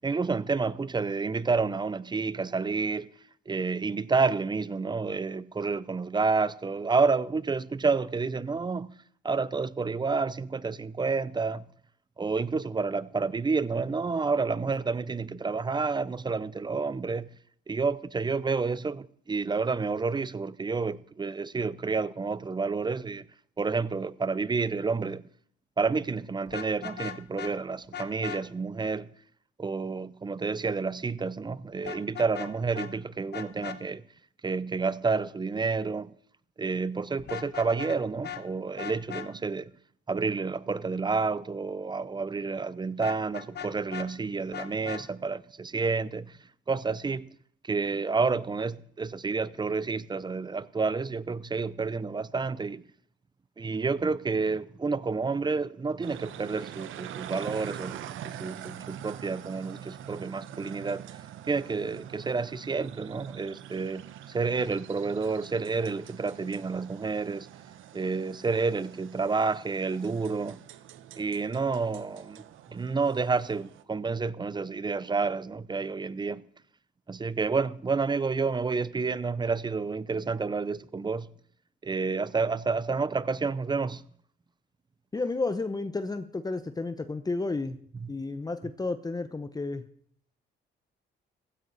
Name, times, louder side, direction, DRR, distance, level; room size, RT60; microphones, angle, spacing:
voice 1, 0.0-3.1 3.5-8.9 9.2-11.7 12.2-17.3 17.7-23.3 23.6-25.2 25.8-29.1 29.6-34.0 34.4-36.1 36.6-39.7 40.1-46.4 46.7-47.3 47.6-52.8 53.6-61.0 61.5-64.0 64.3-67.5 67.9-70.6 71.2-76.4 77.1-81.3 81.8-84.0 87.9-88.1, right 4 dB, 20° right, 0.7 m, -29 dB
Vehicle horn car horn honking, 26.5-27.5 27.9-28.4 31.9-32.5 32.8-32.9 33.3-33.8 37.2-38.0 38.2-38.4 38.8-39.3 43.0-44.1 44.5-45.0, left 9 dB, 55° left, 1.2 m, -38 dB
sound 1, 56.0-73.8, right 11 dB, 80° right, 1.0 m, -45 dB
voice 2, 85.1-87.7 88.1-89.9, left 3 dB, 20° left, 0.9 m, -32 dB
16.0 x 15.0 x 4.1 m
cardioid pair, 90°, 20 cm